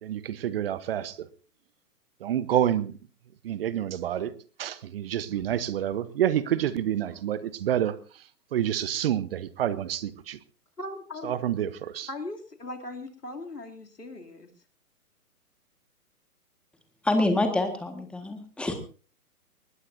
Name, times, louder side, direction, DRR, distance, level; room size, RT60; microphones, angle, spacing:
voice 1, 0.0-1.3 2.2-2.9 3.4-4.3 4.6-10.4 11.2-12.1, right 10 dB, 40° right, 16 dB, 1.0 m, -28 dB
voice 2, 10.8-11.3 12.1-14.5 18.7-18.8, left 2 dB, 90° left, 4 dB, 3.1 m, -39 dB
voice 3, 17.0-18.7, left 2 dB, ahead, 6 dB, 1.6 m, -26 dB
21.5 x 19.5 x 2.7 m, 0.38 s
figure-of-eight pair, 130°, 46 cm